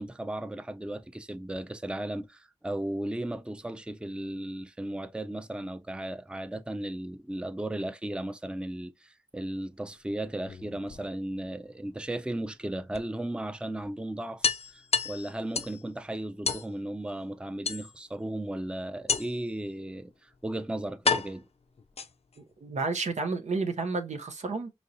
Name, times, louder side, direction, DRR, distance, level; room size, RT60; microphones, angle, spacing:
voice 1, 0.0-21.5, right 1 dB, 10° right, 0.4 m, -35 dB
sound 1, 10.3-11.5 12.9-13.0 13.4-13.5 13.8-13.9 14.4-15.8 16.4-16.7 17.6-18.2 19.1-19.5 20.3-20.4 21.0-22.4, left 5 dB, 60° left, 0.4 m, -30 dB
voice 2, 22.6-24.7, right 3 dB, 85° right, 0.6 m, -31 dB
4.2 x 3.0 x 2.6 m
cardioid pair, 40°, 12 cm